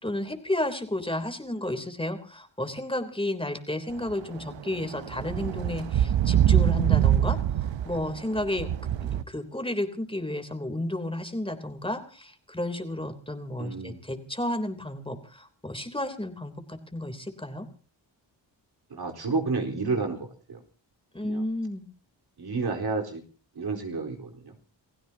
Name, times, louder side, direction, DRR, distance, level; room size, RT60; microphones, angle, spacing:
voice 1, 0.0-7.4 7.8-8.7 9.3-17.7 21.1-21.9, left 1 dB, 10° left, 7 dB, 3.3 m, -32 dB
sound 1, 4.1-4.2 4.7-9.2, right 10 dB, 80° right, 0.9 m, -24 dB
voice 2, 13.6-14.0 18.9-20.6 21.2-21.4 22.4-23.2 23.5-24.5, right 4 dB, 60° right, 3 dB, 4.2 m, -31 dB
29.0 x 16.0 x 2.8 m, 0.39 s
cardioid pair, 80°, 44 cm